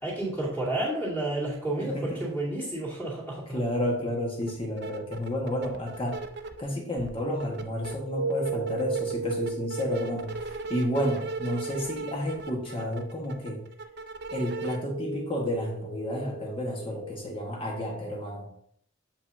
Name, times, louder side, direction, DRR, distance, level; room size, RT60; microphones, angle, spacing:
voice 1, 0.0-3.6, right 1 dB, 10° left, -5 dB, 2.4 m, -31 dB
voice 2, 1.8-2.4 3.5-6.2 6.6-13.6 14.3-18.5, equal, 30° left, 0 dB, 1.4 m, -31 dB
sound 1, 4.4-4.5 4.8-6.6 7.0-7.9 8.3-14.8, right 3 dB, 55° right, 0.6 m, -37 dB
sound 2, 7.9-12.6 13.5-13.6 13.9-17.2, right 4 dB, 85° left, 0.6 m, -37 dB
7.3 x 5.3 x 2.7 m, 0.68 s
head